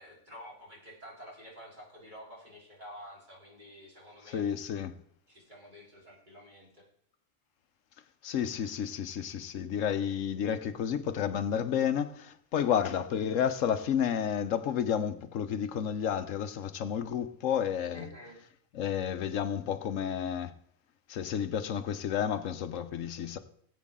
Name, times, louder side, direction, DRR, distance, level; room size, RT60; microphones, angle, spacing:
voice 1, 0.0-4.5 5.3-6.8 17.9-18.4, equal, 35° right, 4.1 m, -49 dB
voice 2, 4.3-4.9 8.2-18.1 18.7-20.5 21.1-23.4, left 8 dB, 90° left, 1.2 m, -31 dB
17.5 x 8.2 x 3.7 m
omnidirectional pair, 1.3 m